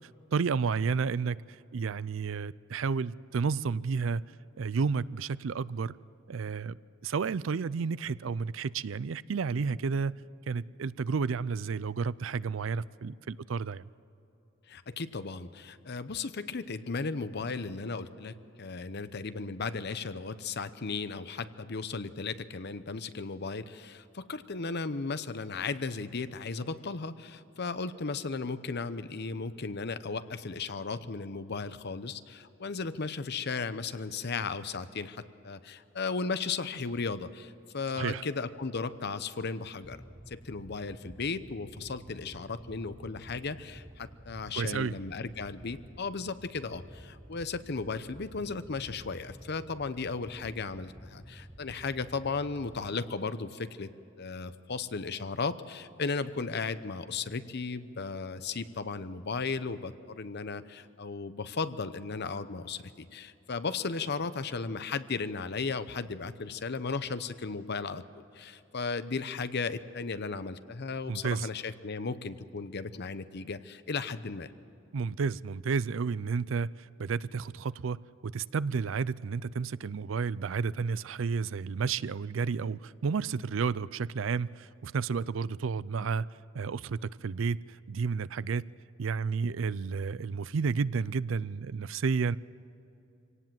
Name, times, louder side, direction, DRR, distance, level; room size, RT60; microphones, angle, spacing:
voice 1, 0.3-1.4 1.7-4.2 4.6-5.9 6.3-6.8 7.0-10.2 10.5-13.9 37.9-38.2 44.6-45.0 71.1-71.5 74.9-86.3 86.5-88.6 89.0-92.4, right 5 dB, 70° right, 0.4 m, -31 dB
voice 2, 14.7-40.0 40.3-53.9 54.2-74.5, left 4 dB, 55° left, 0.8 m, -35 dB
sound 1, 39.8-53.0, right 1 dB, 10° right, 0.6 m, -50 dB
25.0 x 18.0 x 7.6 m
head